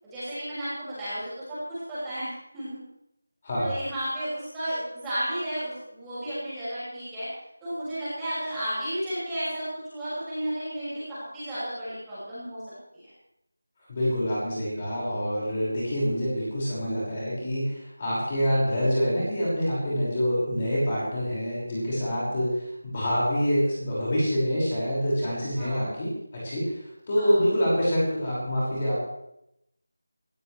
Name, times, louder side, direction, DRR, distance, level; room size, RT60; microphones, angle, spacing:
voice 1, 0.0-2.8 3.6-7.3 7.6-13.1 21.9-22.3 25.6-26.0 27.2-27.5, right 1 dB, 5° right, -14 dB, 6.0 m, -33 dB
voice 2, 13.9-26.8 27.1-29.1, equal, 20° left, -7 dB, 5.8 m, -26 dB
22.0 x 15.5 x 3.4 m, 0.81 s
figure-of-eight pair, 175°, 0 cm